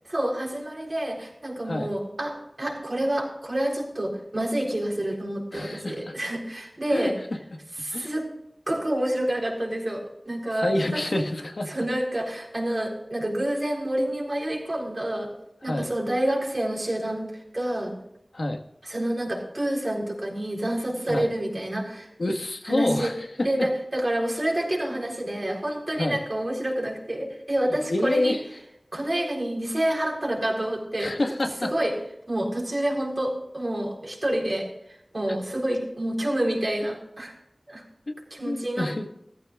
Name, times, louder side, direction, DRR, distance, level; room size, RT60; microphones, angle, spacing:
voice 1, 0.1-7.2 7.8-8.3 8.7-11.0 11.7-15.3 15.6-17.3 17.5-17.9 18.8-22.1 22.7-23.1 23.4-28.4 28.9-31.1 31.6-31.9 32.3-34.7 35.1-37.3 37.7-37.8 38.3-39.1, right 1 dB, 50° right, -1 dB, 4.0 m, -28 dB
voice 2, 5.5-6.1 6.9-7.1 7.9-8.1 10.5-11.7 15.6-15.9 18.3-18.6 21.1-21.3 22.2-23.2 26.0-26.2 27.9-28.4 31.0-31.7 38.1-38.2 38.4-39.1, left 1 dB, 80° left, 4 dB, 1.5 m, -27 dB
16.5 x 14.0 x 2.5 m, 0.79 s
wide cardioid pair, 55°, 0 cm